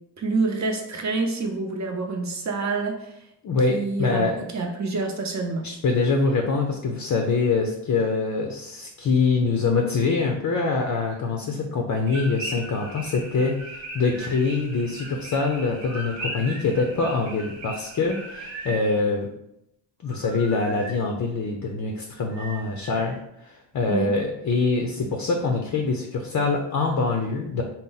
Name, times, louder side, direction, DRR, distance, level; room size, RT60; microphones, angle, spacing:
voice 1, 0.2-3.1 3.7-5.6 23.8-24.1, right 3 dB, 40° right, 3 dB, 0.7 m, -27 dB
voice 2, 3.4-4.4 5.6-19.3 20.0-27.6, left 4 dB, 45° left, 2 dB, 0.5 m, -24 dB
sound 1, 12.1-18.7, right 1 dB, 75° right, 1.1 m, -38 dB
sound 2, 13.7-14.4 15.8-16.7 18.0-18.9 20.0-21.0 22.3-23.2, right 3 dB, 5° left, 0.8 m, -41 dB
4.0 x 2.1 x 3.9 m, 0.80 s
wide cardioid pair, 120°, 45 cm